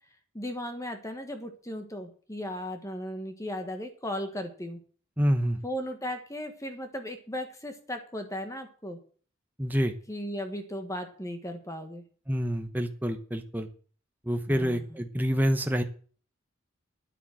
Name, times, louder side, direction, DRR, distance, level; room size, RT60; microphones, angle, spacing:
voice 1, 0.3-4.8 5.6-9.0 10.1-12.0 14.5-15.0, equal, 15° left, 6 dB, 1.4 m, -36 dB
voice 2, 5.2-5.6 9.6-10.0 12.3-13.7 14.2-15.8, equal, 10° right, 6 dB, 0.9 m, -27 dB
10.0 x 8.3 x 7.7 m, 0.43 s
head